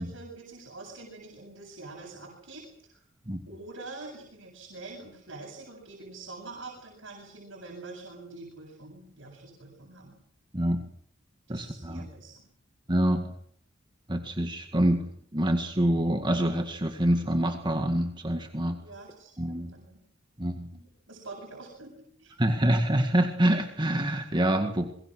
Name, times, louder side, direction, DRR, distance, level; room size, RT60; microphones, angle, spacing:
voice 1, 0.0-2.6 2.9-3.0 3.5-10.2 11.5-12.4 18.8-20.0 20.7-22.4, right 3 dB, 70° right, -1 dB, 7.7 m, -45 dB
voice 2, 10.5-10.8 11.5-12.1 12.9-13.3 14.1-15.0 15.3-18.8 19.4-19.7 20.4-20.7 22.4-24.9, right 1 dB, 25° right, 5 dB, 1.9 m, -26 dB
27.0 x 23.0 x 6.4 m, 0.63 s
head